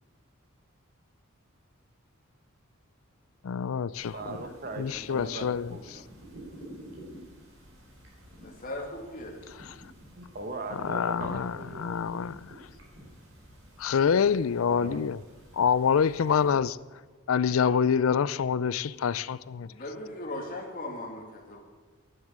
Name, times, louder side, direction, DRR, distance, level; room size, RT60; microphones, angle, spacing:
voice 1, 3.4-4.4 4.8-5.7 9.7-9.8 10.8-12.5 13.8-15.2 15.6-16.8 17.3-19.7, left 7 dB, 75° left, 0.4 m, -26 dB
sound 1, 3.9-16.5, equal, 70° right, 4.6 m, -49 dB
voice 2, 4.1-6.1 10.2-11.9 14.7-15.0, right 2 dB, 45° right, 1.4 m, -39 dB
voice 3, 8.4-9.4 19.7-21.6, left 1 dB, 40° left, 2.3 m, -38 dB
11.0 x 9.5 x 8.8 m
head